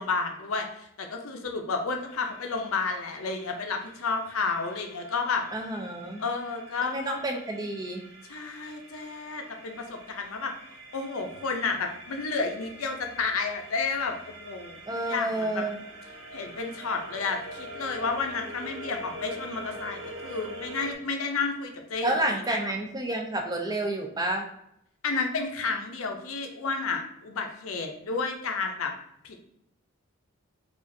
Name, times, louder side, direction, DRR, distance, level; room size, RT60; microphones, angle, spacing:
voice 1, 0.0-5.4 6.2-7.2 8.3-10.5 10.9-15.6 16.3-22.1 22.5-22.7 25.0-28.9 29.2-29.4, left 4 dB, 80° left, 4 dB, 0.6 m, -31 dB
sound 1, 2.0-20.9, right 1 dB, 65° right, 0.7 m, -45 dB
voice 2, 5.5-6.2 6.8-8.0 14.9-15.8 22.0-24.5, right 1 dB, 20° right, 2 dB, 0.4 m, -30 dB
4.8 x 2.5 x 2.6 m, 0.78 s
head